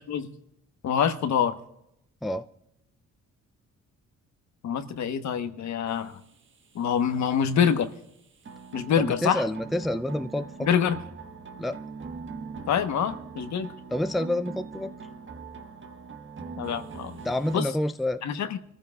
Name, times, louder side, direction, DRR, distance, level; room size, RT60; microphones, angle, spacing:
voice 1, 0.8-1.5 4.6-6.2 6.7-7.9 8.7-9.4 10.6-11.0 12.7-13.7 16.6-17.2 17.5-17.7 18.2-18.6, left 8 dB, 65° left, 9 dB, 1.2 m, -25 dB
sound 1, 5.9-17.6, right 5 dB, 40° right, 1.3 m, -42 dB
voice 2, 9.0-10.7 11.6-11.8 13.9-14.9 17.2-18.2, left 1 dB, ahead, 10 dB, 0.4 m, -28 dB
25.5 x 14.5 x 2.4 m, 0.80 s
cardioid pair, 90°, 30 cm